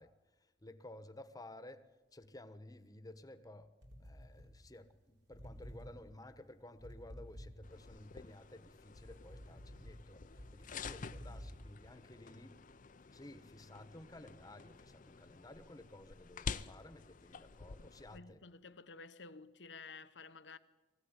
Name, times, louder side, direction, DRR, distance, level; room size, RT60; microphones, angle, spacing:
voice 1, 0.0-3.7 4.0-12.6 13.1-18.4, left 1 dB, 20° left, 1.2 m, -55 dB
sound 1, 3.8-5.0 5.3-8.0 8.5-11.7, equal, 80° right, 4.3 m, -52 dB
sound 2, 7.6-18.2, left 5 dB, 50° left, 0.6 m, -49 dB
voice 2, 18.1-20.6, left 4 dB, 85° left, 1.1 m, -52 dB
21.0 x 16.0 x 9.8 m
head